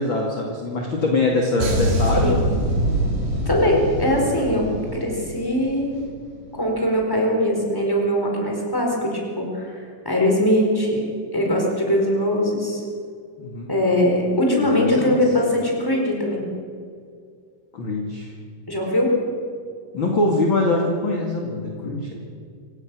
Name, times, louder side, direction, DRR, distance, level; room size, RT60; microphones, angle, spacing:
voice 1, 0.0-2.5 13.4-13.7 14.7-15.2 17.7-18.3 19.9-22.2, left 2 dB, 40° left, 0 dB, 2.6 m, -23 dB
sound 1, 1.6-6.2 6.4-6.7, right 1 dB, 70° right, 5.0 m, -24 dB
voice 2, 3.4-6.0 6.5-11.0 11.3-12.8 13.7-16.5 18.7-19.1, left 1 dB, 5° left, 0 dB, 4.2 m, -21 dB
26.5 x 17.0 x 6.3 m, 2.2 s
omnidirectional pair, 3.8 m